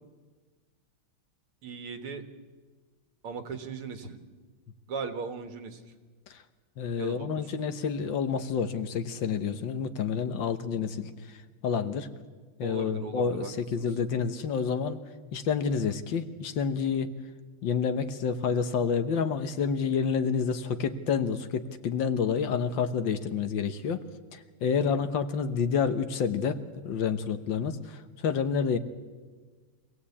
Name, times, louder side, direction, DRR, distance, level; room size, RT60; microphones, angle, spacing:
voice 1, 1.6-2.3 3.2-4.2 4.9-5.8 7.0-7.4 12.6-13.9 25.0-25.1, right 5 dB, 85° right, 7 dB, 2.5 m, -38 dB
voice 2, 6.8-12.1 12.6-15.0 15.3-17.1 17.6-24.0 24.3-28.8, left 6 dB, 65° left, 10 dB, 1.7 m, -29 dB
25.0 x 17.5 x 8.5 m, 1.4 s
omnidirectional pair, 2.3 m